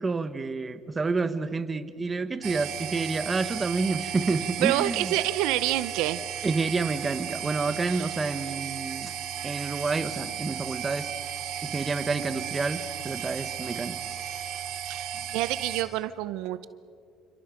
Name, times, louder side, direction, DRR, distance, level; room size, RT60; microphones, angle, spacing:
voice 1, 0.0-5.1 6.4-9.1 9.4-11.1 11.6-14.0, right 3 dB, 25° right, 11 dB, 1.3 m, -29 dB
sound 1, 2.4-15.8, right 10 dB, 70° right, 2.5 m, -35 dB
voice 2, 4.6-6.2 7.9-8.0 14.9-15.1 15.3-16.6, right 15 dB, 90° right, 14 dB, 0.7 m, -27 dB
28.0 x 26.5 x 5.1 m, 2.3 s
cardioid pair, 110°, 0 cm